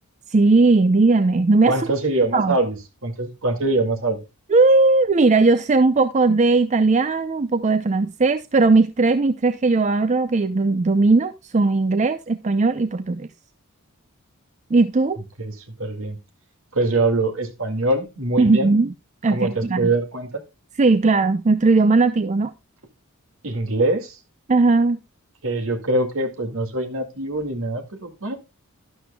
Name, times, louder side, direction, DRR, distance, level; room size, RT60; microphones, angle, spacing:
voice 1, 0.3-1.8 2.3-2.6 4.5-13.3 14.7-15.2 18.4-18.9 19.2-19.8 20.8-22.5 24.5-25.0, right 3 dB, 30° right, 0.5 m, -18 dB
voice 2, 1.6-4.2 15.4-16.2 16.7-18.7 19.3-20.4 23.4-24.2 25.4-28.3, right 2 dB, 65° right, 2.1 m, -23 dB
12.0 x 11.5 x 2.2 m
head